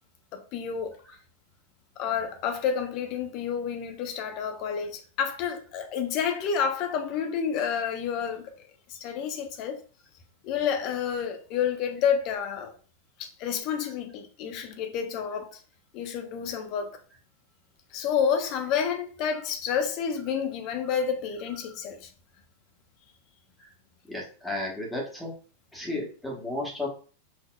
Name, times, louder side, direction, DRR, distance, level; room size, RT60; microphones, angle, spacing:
voice 1, 0.3-1.0 2.0-8.5 8.9-9.8 10.4-12.7 13.2-15.6 15.9-17.0 17.9-22.1, left 7 dB, 40° left, 0.7 m, -29 dB
voice 2, 24.1-25.3 25.7-26.9, left 1 dB, 5° left, 1.1 m, -33 dB
4.9 x 2.7 x 2.3 m
figure-of-eight pair, 90°, 0 cm